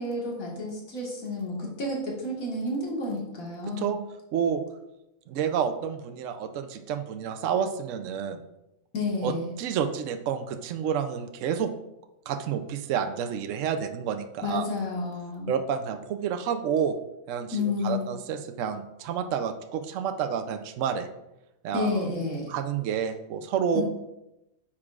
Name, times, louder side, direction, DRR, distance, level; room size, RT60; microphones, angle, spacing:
voice 1, 0.0-3.9 8.9-9.5 14.4-15.5 17.5-18.1 21.7-22.5 23.7-23.8, left 2 dB, 80° left, -3 dB, 2.1 m, -30 dB
voice 2, 3.7-4.0 4.3-4.6 5.3-8.4 9.2-11.7 12.3-14.7 15.5-17.0 17.3-21.1 21.6-22.0 22.5-23.8, right 7 dB, 70° right, 8 dB, 0.9 m, -29 dB
9.5 x 7.2 x 2.4 m, 0.90 s
omnidirectional pair, 1.5 m